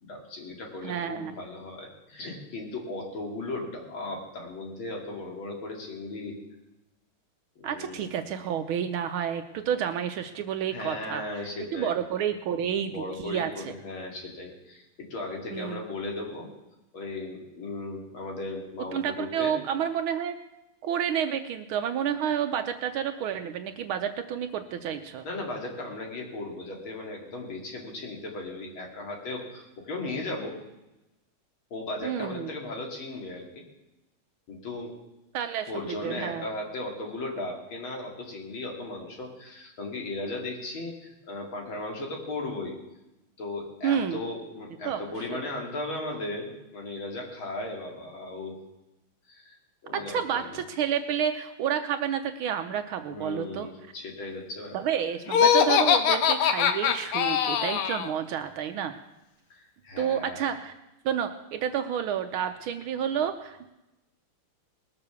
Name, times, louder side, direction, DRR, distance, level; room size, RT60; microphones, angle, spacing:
voice 1, 0.0-6.4 7.6-8.1 10.7-11.9 12.8-16.5 16.9-19.6 25.2-30.6 31.7-33.6 34.5-34.9 35.7-42.8 43.4-48.5 49.3-49.6 49.8-50.6 53.1-54.8 59.5-60.4, left 2 dB, 65° left, 1 dB, 3.1 m, -36 dB
voice 2, 0.8-1.4 7.6-11.4 11.7-13.7 15.5-15.8 18.9-20.4 20.8-25.2 32.0-32.5 35.3-36.5 43.8-44.2 44.8-45.0 49.9-53.7 54.7-58.9 60.0-60.7 61.0-63.7, right 8 dB, 75° right, 7 dB, 1.5 m, -30 dB
Laughter, 55.3-58.1, left 9 dB, 80° left, 1.8 m, -22 dB
19.5 x 6.9 x 6.9 m, 0.96 s
omnidirectional pair, 2.4 m